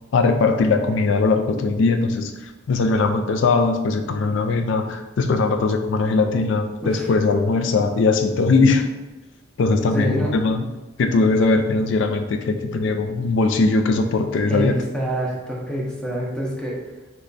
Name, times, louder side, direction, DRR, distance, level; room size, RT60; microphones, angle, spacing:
voice 1, 0.1-2.3 2.7-8.8 9.6-10.7 11.0-14.8, left 3 dB, 70° left, 6 dB, 0.4 m, -20 dB
voice 2, 9.9-10.3 14.5-16.8, equal, 5° left, -4 dB, 0.6 m, -26 dB
3.1 x 2.2 x 3.9 m, 1.1 s
head